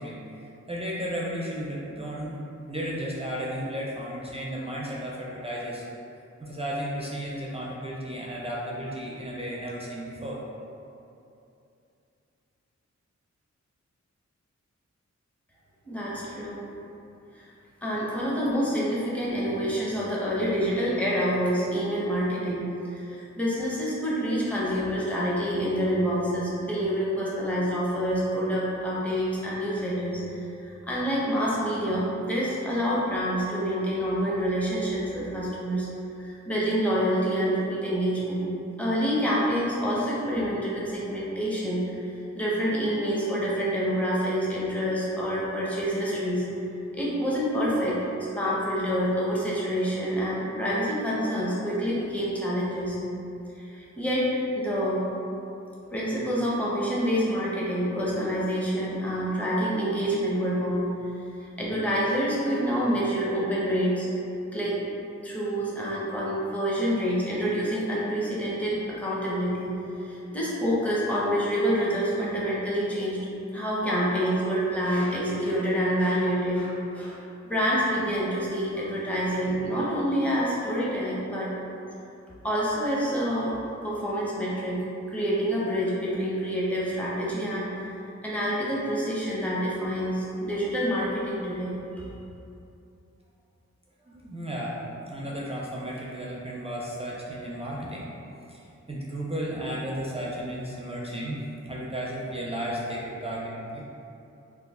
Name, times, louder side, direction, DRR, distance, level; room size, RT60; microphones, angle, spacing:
voice 1, 0.0-2.3 2.7-5.8 6.4-10.4 94.0-98.1 98.5-101.4 101.6-103.8, equal, 20° right, -5 dB, 0.4 m, -34 dB
voice 2, 15.8-16.6 17.8-35.9 36.2-38.4 38.8-42.0 42.3-46.4 46.9-48.0 48.4-53.0 53.5-54.3 54.6-55.0 55.9-60.9 61.4-64.1 64.5-73.2 73.5-77.2 77.5-81.5 82.4-84.8 85.1-87.8 88.2-92.1, equal, 5° left, -7 dB, 0.8 m, -27 dB
3.0 x 2.4 x 3.6 m, 2.7 s
wide cardioid pair, 70°, 29 cm